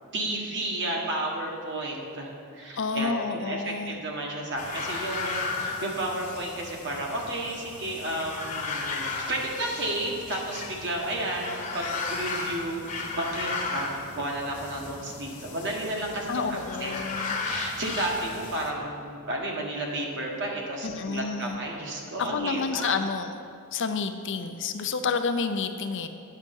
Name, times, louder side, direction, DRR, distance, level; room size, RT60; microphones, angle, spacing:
voice 1, 0.1-17.0 17.4-23.0, right 1 dB, 55° right, -1 dB, 1.4 m, -32 dB
voice 2, 2.8-4.0 16.3-17.4 20.8-21.6 22.2-23.3 23.7-26.1, left 5 dB, 55° left, 8 dB, 0.5 m, -29 dB
sound 1, 4.6-18.7, left 4 dB, 35° left, 1.0 m, -35 dB
9.4 x 6.5 x 5.4 m, 2.4 s
head